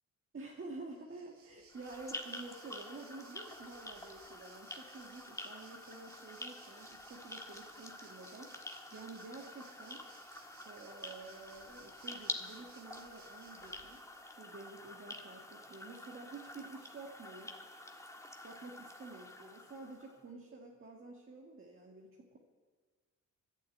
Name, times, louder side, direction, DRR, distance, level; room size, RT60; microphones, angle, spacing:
voice 1, 0.3-10.0 10.6-14.0 14.4-17.6 18.4-22.4, right 3 dB, 40° right, -1 dB, 1.8 m, -50 dB
Waves surf, 0.9-14.2, right 5 dB, 85° right, 1.9 m, -62 dB
sound 1, 1.7-20.2, left 1 dB, 10° left, 1.5 m, -48 dB
11.0 x 9.7 x 8.7 m, 1.5 s
cardioid pair, 90°, 33 cm